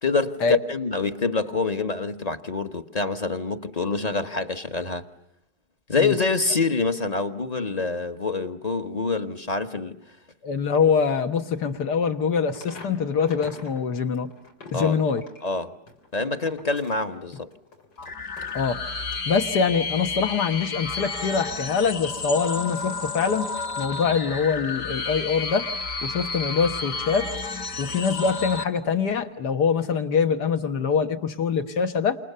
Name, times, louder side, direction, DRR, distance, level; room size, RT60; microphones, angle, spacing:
voice 1, 0.0-5.0 5.9-10.0 14.7-15.0 15.4-15.7 16.1-17.5, left 3 dB, 25° left, 1.0 m, -26 dB
voice 2, 10.4-14.3 14.7-15.2 18.5-18.8 19.3-23.5 23.8-25.7 26.0-27.3 27.8-32.2, left 6 dB, 70° left, 2.0 m, -24 dB
sound 1, 12.5-13.8 14.1-19.5 19.9-20.1, left 3 dB, 85° left, 4.3 m, -46 dB
sound 2, 18.0-28.6, left 4 dB, 50° left, 1.8 m, -31 dB
28.5 x 28.0 x 6.8 m
omnidirectional pair, 1.9 m